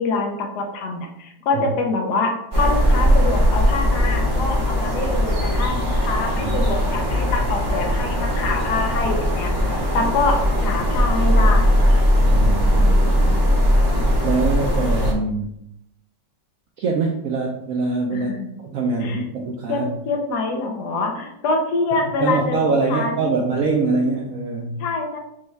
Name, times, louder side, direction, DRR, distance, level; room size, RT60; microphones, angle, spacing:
voice 1, 0.0-12.0 18.1-18.5 19.0-19.2 19.7-23.4 24.8-25.2, left 3 dB, 70° left, 2 dB, 1.1 m, -25 dB
sound 1, 2.5-15.1, equal, 20° right, 0.8 m, -19 dB
voice 2, 12.3-13.5 14.2-15.5 16.8-18.3 18.6-19.9 21.9-24.8, right 3 dB, 85° right, 0 dB, 0.7 m, -24 dB
5.3 x 2.3 x 3.1 m, 0.78 s
omnidirectional pair, 2.0 m